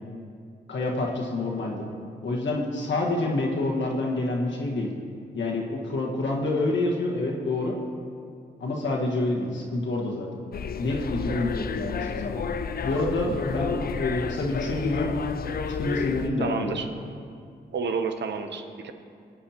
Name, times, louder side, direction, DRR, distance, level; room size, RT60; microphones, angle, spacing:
voice 1, 0.7-1.8 2.2-4.9 5.3-7.7 8.6-10.3 10.8-12.4 12.8-15.1 15.8-16.8, left 2 dB, 75° left, -1 dB, 1.5 m, -27 dB
sound 1, 10.5-16.3, left 6 dB, 55° left, 0.5 m, -31 dB
voice 2, 16.4-16.9 17.7-18.9, right 5 dB, 70° right, 7 dB, 0.8 m, -30 dB
16.0 x 8.8 x 2.9 m, 2.3 s
supercardioid pair, 50°, 19 cm